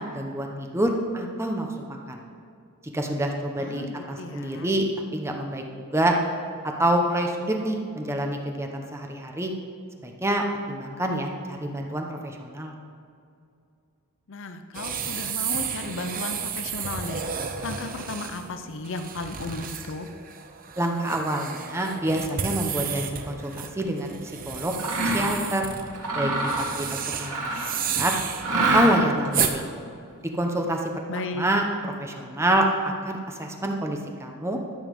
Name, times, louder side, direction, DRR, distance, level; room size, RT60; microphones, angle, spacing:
voice 1, 0.0-2.2 2.9-4.8 5.1-5.6 5.9-6.1 6.8-9.5 10.0-12.7 20.8-25.6 26.1-27.5 27.8-28.1 28.5-29.7 30.2-31.6 32.0-32.7 33.0-34.6, right 1 dB, 10° right, 2 dB, 0.9 m, -27 dB
voice 2, 3.6-4.7 14.3-17.3 17.6-20.1 31.1-31.5, left 3 dB, 60° left, 8 dB, 0.7 m, -35 dB
sound 1, 14.7-29.6, right 7 dB, 40° right, 0.8 m, -32 dB
Mechanisms, 24.7-25.4 25.9-27.8 28.4-29.3, right 2 dB, 85° right, 2.5 m, -26 dB
12.5 x 7.1 x 5.4 m, 2.4 s
head